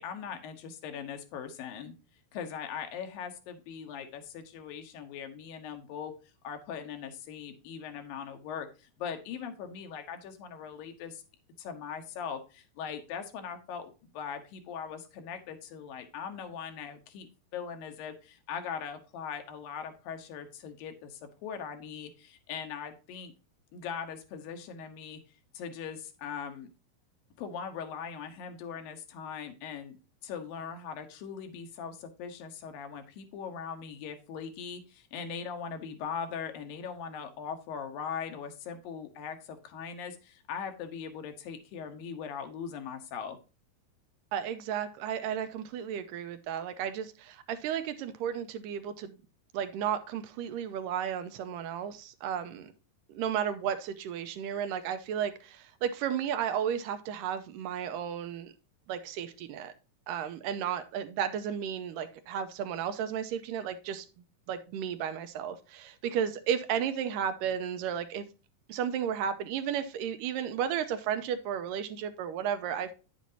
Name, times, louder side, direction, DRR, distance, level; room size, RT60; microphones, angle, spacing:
voice 1, 0.0-1.9 2.3-6.1 6.4-11.2 11.6-23.3 23.7-25.2 25.5-26.7 27.4-30.0 30.2-43.4, left 7 dB, 85° left, 6 dB, 2.8 m, -40 dB
voice 2, 44.3-49.2 49.5-52.7 53.1-58.5 58.9-59.7 60.1-64.1 64.5-68.3 68.7-72.9, right 8 dB, 80° right, 9 dB, 2.3 m, -33 dB
9.3 x 7.2 x 2.7 m, 0.31 s
omnidirectional pair, 3.9 m